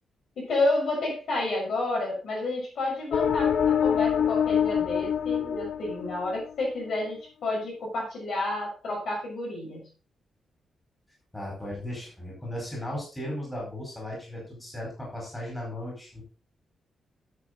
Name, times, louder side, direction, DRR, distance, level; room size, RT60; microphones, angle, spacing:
voice 1, 0.4-9.8, left 2 dB, 60° left, -2 dB, 5.9 m, -30 dB
sound 1, 3.1-6.7, left 8 dB, 80° left, 0.6 m, -25 dB
voice 2, 11.3-16.2, left 1 dB, 10° left, -2 dB, 4.3 m, -36 dB
9.9 x 7.9 x 3.8 m, 0.34 s
wide cardioid pair, 160°, 0 cm